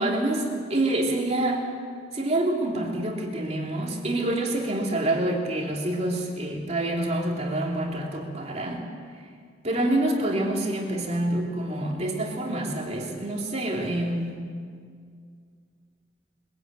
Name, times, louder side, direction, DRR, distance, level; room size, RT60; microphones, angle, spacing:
voice 1, 0.0-1.6 2.1-8.8 9.6-14.4, right 1 dB, 35° right, 0 dB, 2.9 m, -27 dB
22.0 x 15.5 x 9.1 m, 2.1 s
head